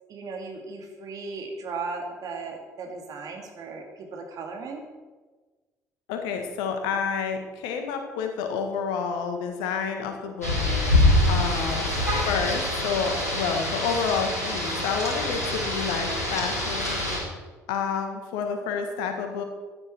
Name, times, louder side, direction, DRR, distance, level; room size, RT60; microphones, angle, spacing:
voice 1, 0.1-4.8, right 4 dB, 45° right, 2 dB, 2.6 m, -36 dB
voice 2, 6.1-10.6 11.3-11.8 12.3-17.0 17.7-19.4, left 6 dB, 65° left, 5 dB, 1.8 m, -29 dB
Rain, 10.4-17.2, left 1 dB, 85° left, 2.3 m, -25 dB
15.5 x 10.5 x 4.6 m, 1.3 s
figure-of-eight pair, 50°, 8 cm